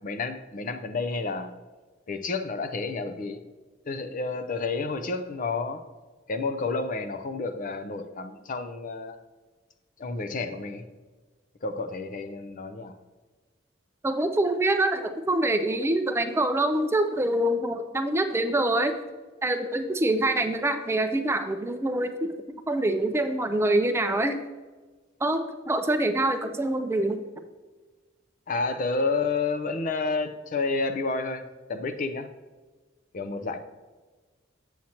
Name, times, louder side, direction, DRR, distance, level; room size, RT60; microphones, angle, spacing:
voice 1, 0.0-1.5 2.1-3.4 3.9-5.8 6.3-9.2 10.0-10.8 11.6-12.9 28.5-31.4 31.7-32.3 33.1-33.6, left 3 dB, 45° left, 9 dB, 0.5 m, -30 dB
voice 2, 14.0-19.0 19.4-22.3 22.7-24.4 25.2-27.2, right 1 dB, 15° right, 7 dB, 0.4 m, -25 dB
7.6 x 7.2 x 2.9 m, 1.3 s
head